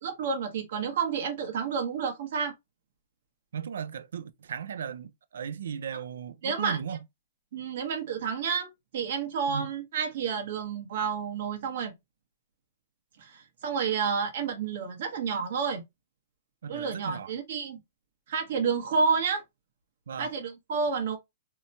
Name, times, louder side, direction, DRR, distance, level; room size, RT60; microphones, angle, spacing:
voice 1, 0.0-2.5 6.4-6.8 7.5-11.9 13.2-15.8 16.7-17.8 18.3-19.4 20.2-21.2, right 5 dB, 65° right, 0.9 m, -30 dB
voice 2, 3.5-7.0 9.5-9.7 16.6-17.3 20.1-20.3, right 8 dB, 80° right, 0.3 m, -36 dB
2.8 x 2.1 x 2.7 m
hypercardioid pair, 145°, 0 cm